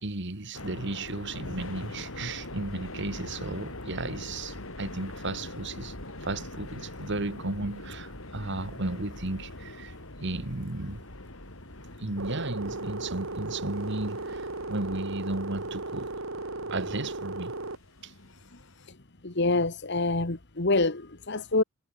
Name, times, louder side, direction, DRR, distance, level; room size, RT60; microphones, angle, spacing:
voice 1, 0.0-5.9 6.2-11.0 12.0-16.1 16.7-17.5 18.0-18.1, right 2 dB, 60° right, 1.9 m, -34 dB
sound 1, 0.5-18.9, left 1 dB, 90° left, 6.4 m, -43 dB
sound 2, 12.2-17.8, right 2 dB, 90° right, 3.1 m, -36 dB
voice 2, 19.2-21.6, left 2 dB, 60° left, 2.0 m, -26 dB
head